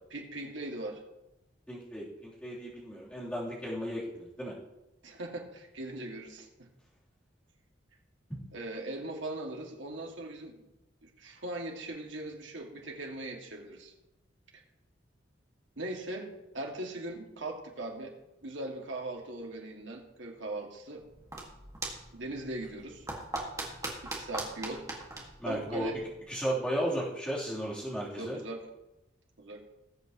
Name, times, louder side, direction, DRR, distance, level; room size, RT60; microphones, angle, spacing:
voice 1, 0.1-1.0 5.0-6.7 8.5-10.6 11.0-13.9 15.8-16.3 16.5-18.1 18.4-21.0 22.1-23.1 24.0-24.8 25.5-26.0 28.0-28.7 29.4-29.6, right 2 dB, 75° right, 0 dB, 2.1 m, -39 dB
voice 2, 1.7-4.5 8.3-8.4 25.4-26.0 26.3-28.4, equal, 5° left, -8 dB, 3.3 m, -34 dB
sound 1, 21.0-26.3, right 2 dB, 15° right, 1.8 m, -41 dB
19.0 x 8.1 x 3.0 m, 0.96 s
head